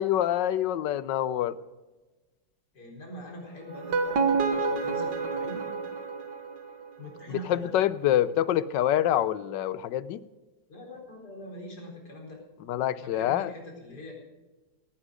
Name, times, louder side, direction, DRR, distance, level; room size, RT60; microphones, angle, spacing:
voice 1, 0.0-1.6 7.3-10.2 12.7-13.5, left 12 dB, 75° left, 17 dB, 1.3 m, -26 dB
voice 2, 2.7-5.7 7.0-7.7 10.7-12.4 13.0-14.1, equal, 60° left, -1 dB, 4.7 m, -43 dB
sound 1, 3.7-6.9, right 4 dB, 65° right, 2.0 m, -28 dB
18.0 x 9.9 x 5.1 m, 1.2 s
omnidirectional pair, 2.0 m